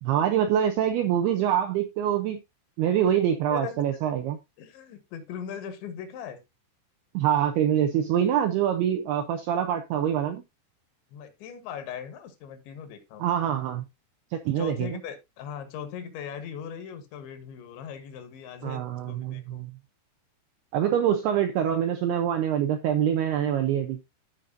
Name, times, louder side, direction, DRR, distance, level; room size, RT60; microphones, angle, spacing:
voice 1, 0.0-2.4 2.8-4.4 7.1-10.4 13.2-13.8 14.3-15.0 18.6-19.7 20.7-24.0, right 10 dB, 80° right, 2.3 m, -25 dB
voice 2, 3.5-3.8 4.6-6.4 11.1-13.3 14.6-19.7, left 8 dB, 75° left, 3.3 m, -39 dB
14.5 x 5.1 x 2.6 m
omnidirectional pair, 5.4 m